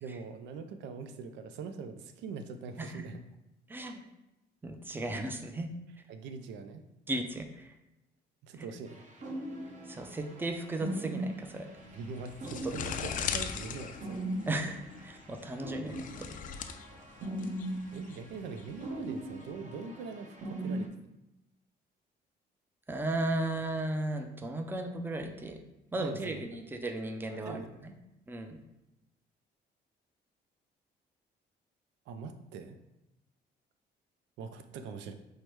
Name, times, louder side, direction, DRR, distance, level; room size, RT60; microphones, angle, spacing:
voice 1, 0.0-3.2 6.1-6.8 8.4-9.0 11.9-14.2 17.9-20.9 25.9-26.4 27.3-27.9 32.1-32.8 34.4-35.1, right 5 dB, 90° right, 8 dB, 0.4 m, -43 dB
voice 2, 3.7-4.0 4.6-5.7 7.1-7.7 8.6-8.7 9.9-11.7 12.6-12.7 13.0-13.1 14.5-16.0 22.9-25.6 25.9-27.9 28.3-28.6, right 2 dB, 10° right, 6 dB, 0.4 m, -35 dB
sound 1, 8.9-20.9, right 1 dB, 45° right, 0.8 m, -40 dB
sound 2, 11.8-19.4, left 7 dB, 50° left, 0.4 m, -40 dB
4.7 x 2.1 x 4.4 m, 0.93 s
cardioid pair, 105°, 18 cm